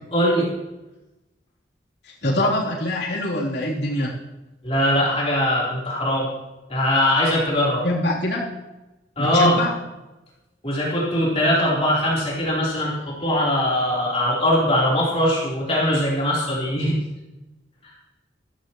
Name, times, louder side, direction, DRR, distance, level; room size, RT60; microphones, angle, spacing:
voice 1, 0.1-0.5 4.6-6.3 6.7-7.8 9.2-9.6 10.6-17.0 17.8-17.9, left 1 dB, 35° left, -6 dB, 3.7 m, -21 dB
voice 2, 2.0-4.1 7.8-8.4 9.2-9.7, left 1 dB, 80° left, -5 dB, 3.3 m, -24 dB
14.5 x 14.0 x 3.1 m, 1.0 s
head